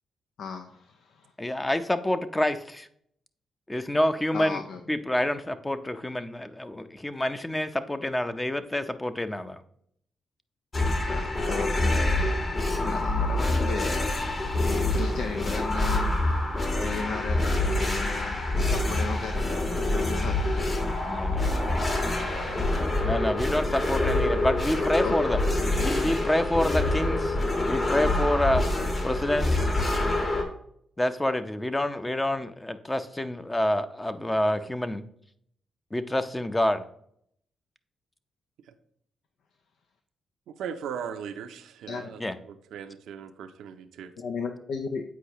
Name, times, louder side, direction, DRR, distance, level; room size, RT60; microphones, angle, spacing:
voice 1, 0.4-1.3 4.3-5.0 11.0-12.4 12.8-14.0 14.6-16.2 16.8-18.4 18.7-20.8 24.7-25.2 41.9-42.0 44.2-45.0, left 5 dB, 80° left, 5 dB, 0.5 m, -35 dB
voice 2, 1.4-2.9 3.7-4.6 4.9-9.6 21.1-21.7 23.0-25.4 25.8-27.4 27.7-28.6 29.0-29.7 31.0-35.0 35.9-36.8 42.2-42.3, left 1 dB, 15° left, 9 dB, 0.6 m, -27 dB
sound 1, 10.7-30.4, left 2 dB, 40° left, 1.9 m, -26 dB
voice 3, 40.5-42.2 42.7-44.1, right 8 dB, 80° right, 8 dB, 0.5 m, -38 dB
8.2 x 4.6 x 3.0 m, 0.67 s
supercardioid pair, 60°, 0 cm